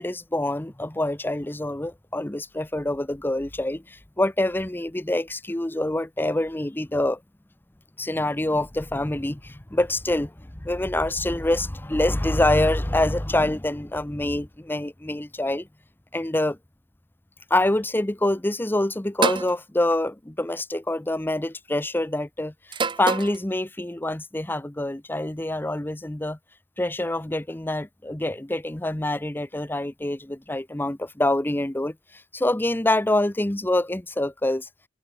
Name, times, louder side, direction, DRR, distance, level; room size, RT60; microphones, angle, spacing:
voice 1, 0.0-7.2 8.0-10.3 10.6-15.7 16.1-16.6 17.5-26.4 26.8-34.7, left 1 dB, 10° left, 0.6 m, -26 dB
sound 1, 19.2-19.5 20.7-21.1 22.7-23.4, right 4 dB, 25° right, 0.6 m, -26 dB
head